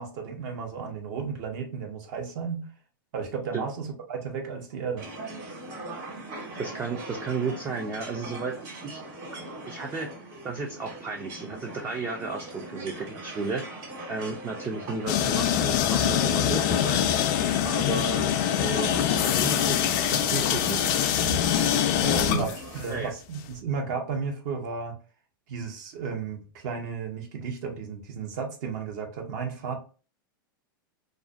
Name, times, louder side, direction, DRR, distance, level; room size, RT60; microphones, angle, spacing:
voice 1, 0.0-2.7 3.1-5.1 22.3-22.5 22.7-25.0 25.5-29.8, right 5 dB, 60° right, 0.8 m, -33 dB
sound 1, 5.0-22.8, right 2 dB, 40° right, 1.4 m, -41 dB
voice 2, 6.6-8.6 8.8-9.0 9.7-10.1 10.4-13.6 14.1-17.2 17.6-18.3 18.6-18.9 19.2-20.9 22.0-22.5 22.9-23.1, right 3 dB, 20° right, 0.4 m, -33 dB
sound 2, 15.1-23.0, left 9 dB, 50° left, 0.4 m, -24 dB
2.4 x 2.1 x 2.4 m
hypercardioid pair, 115°, 12 cm